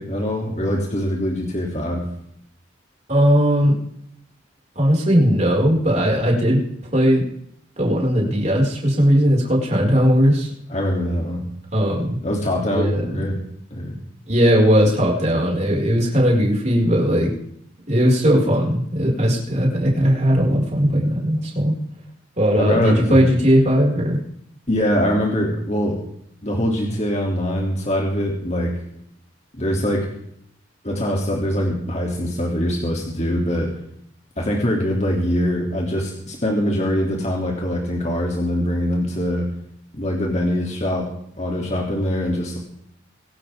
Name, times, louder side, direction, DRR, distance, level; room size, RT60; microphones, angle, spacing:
voice 1, 0.0-2.0 10.7-11.5 12.2-13.4 13.7-14.0 22.5-23.2 24.7-26.0 26.4-28.7 29.6-30.1 30.8-33.7 34.4-39.5 39.9-41.1 41.4-42.6, equal, 35° left, -1 dB, 3.0 m, -23 dB
voice 2, 3.1-3.7 4.8-6.6 6.9-7.2 7.8-10.5 11.7-12.2 12.7-13.1 14.3-17.3 17.9-21.7 22.4-24.2, equal, 35° right, -2 dB, 5.7 m, -18 dB
24.0 x 12.5 x 3.7 m, 0.71 s
head